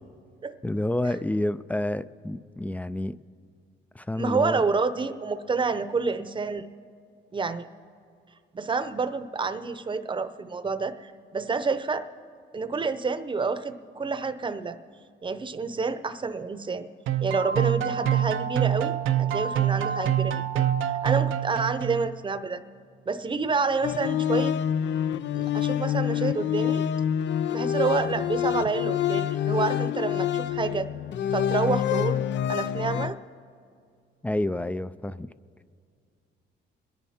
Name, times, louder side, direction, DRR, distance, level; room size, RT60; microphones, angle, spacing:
voice 1, 0.6-3.2 3.9-4.6 34.2-35.3, left 1 dB, 5° left, 0.4 m, -29 dB
voice 2, 4.2-6.6 7.3-7.7 8.5-12.1 12.5-14.8 15.2-16.9 17.2-20.6 21.0-22.6 23.1-24.6 25.3-26.9 27.5-30.9 31.3-32.2 32.5-33.2, right 4 dB, 25° right, 0.8 m, -28 dB
sound 1, 17.1-22.2, right 10 dB, 80° right, 0.7 m, -26 dB
sound 2, 23.8-33.1, left 10 dB, 65° left, 0.5 m, -27 dB
27.0 x 10.5 x 4.3 m
cardioid pair, 90°, 20 cm